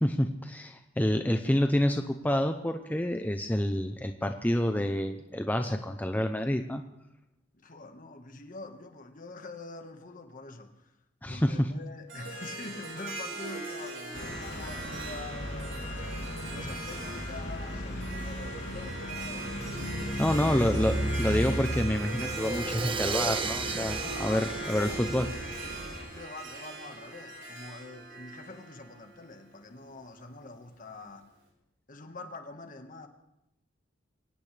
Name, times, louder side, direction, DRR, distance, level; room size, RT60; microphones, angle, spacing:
voice 1, 0.0-6.8 11.2-11.7 19.9-25.3, left 1 dB, 10° left, 0.7 m, -28 dB
voice 2, 7.5-11.0 11.2-16.2 16.5-19.8 20.3-20.6 24.0-25.3 26.1-31.3 31.9-33.1, left 3 dB, 45° left, 1.6 m, -45 dB
Harp, 12.1-29.4, right 2 dB, 80° right, 5.6 m, -40 dB
sound 1, 14.1-26.1, equal, 75° left, 2.3 m, -36 dB
Crash cymbal, 22.2-26.0, right 5 dB, 25° right, 0.7 m, -35 dB
24.0 x 17.5 x 3.4 m
head